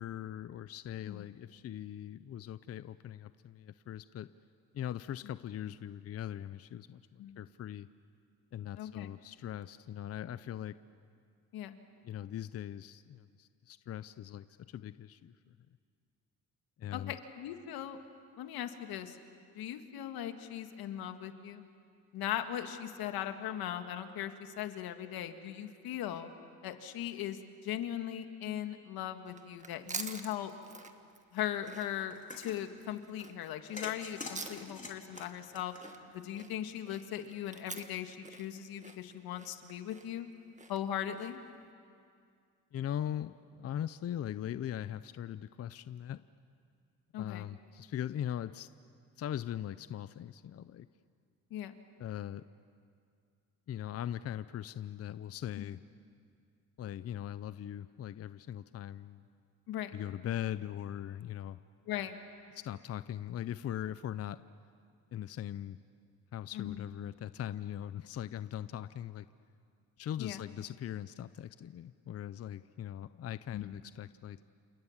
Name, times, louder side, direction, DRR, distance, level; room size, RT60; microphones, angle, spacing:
voice 1, 0.0-4.3 4.7-7.9 8.5-10.7 12.0-15.6 16.8-17.2 42.7-46.2 47.2-48.7 49.2-50.9 52.0-52.4 53.7-55.8 56.8-59.2 59.9-61.6 62.5-64.4 65.1-65.8 66.3-69.3 70.0-74.4, left 11 dB, 40° left, 14 dB, 0.6 m, -40 dB
voice 2, 8.8-9.1 11.5-11.8 16.9-18.0 18.4-19.2 19.6-21.7 22.1-26.3 26.6-30.5 31.3-35.7 36.1-40.3 40.7-41.4 47.1-47.5 51.5-51.7 55.6-55.7 59.7-59.9 61.9-62.2 66.5-66.8 70.2-70.4 73.5-73.8, left 11 dB, 80° left, 7 dB, 1.9 m, -39 dB
sound 1, 29.2-41.5, right 3 dB, 20° right, 1.6 m, -48 dB
sound 2, 32.1-32.6 33.8-36.3, left 3 dB, 20° left, 3.3 m, -45 dB
29.5 x 27.5 x 7.3 m, 2.3 s
cardioid pair, 110°, 36 cm